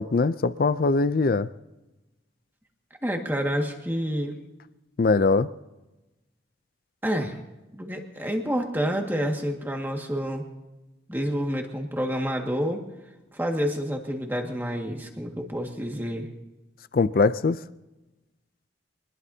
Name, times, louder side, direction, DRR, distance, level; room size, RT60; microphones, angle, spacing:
voice 1, 0.0-1.5 5.0-5.5 16.9-17.6, left 3 dB, 50° left, 0.4 m, -22 dB
voice 2, 3.0-4.4 7.0-7.4 7.8-10.5 11.1-12.8 13.3-16.3, equal, 10° right, 1.8 m, -28 dB
25.5 x 20.5 x 2.8 m
head